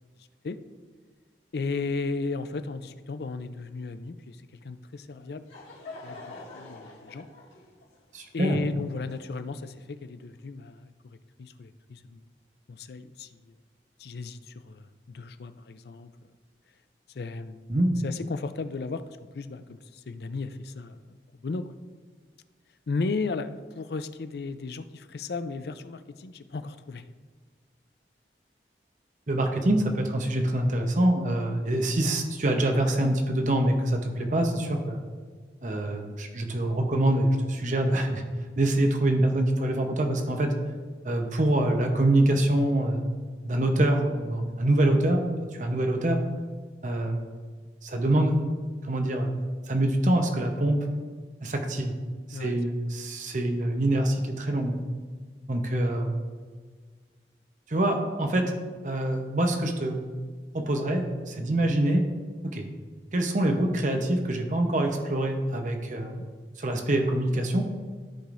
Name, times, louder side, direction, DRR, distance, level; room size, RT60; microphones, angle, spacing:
voice 1, 1.5-5.5 6.0-7.3 8.3-12.3 12.7-13.5 14.0-16.3 17.1-17.8 18.0-21.2 21.4-21.7 22.9-27.1 45.9-46.1 52.3-52.6 66.0-66.3, left 3 dB, 65° left, 11 dB, 0.4 m, -35 dB
Laughter / Crowd, 5.1-9.8, left 3 dB, 90° left, 2.1 m, -46 dB
voice 2, 8.1-8.6 17.7-17.9 29.3-35.0 35.6-38.2 38.6-40.5 41.0-43.0 43.4-45.2 45.5-46.2 46.8-47.3 47.8-48.5 48.8-50.8 51.4-52.0 52.3-54.8 55.5-56.2 57.7-58.5 58.8-60.0 60.5-62.0 62.4-62.7 63.1-66.2 66.6-67.6, right 1 dB, 45° right, 4 dB, 0.8 m, -25 dB
14.0 x 5.0 x 2.6 m, 1.5 s
head